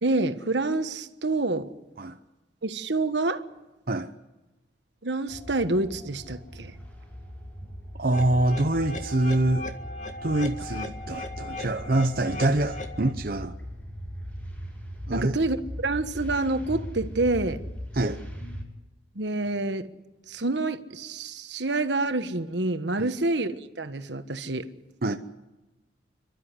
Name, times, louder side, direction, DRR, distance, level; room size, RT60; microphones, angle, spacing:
voice 1, 0.0-1.7 2.6-3.4 5.0-6.7 15.1-17.6 19.1-19.8 20.3-24.7, right 2 dB, 75° right, 1.4 m, -27 dB
sound 1, 5.3-18.6, equal, 10° left, 6.3 m, -39 dB
voice 2, 8.0-9.7 10.2-13.5 15.1-15.3 17.9-18.2 23.0-23.1 25.0-25.2, right 1 dB, 55° right, 0.9 m, -25 dB
sound 2, 8.1-13.1, left 1 dB, 45° left, 1.8 m, -38 dB
28.5 x 12.5 x 9.8 m
head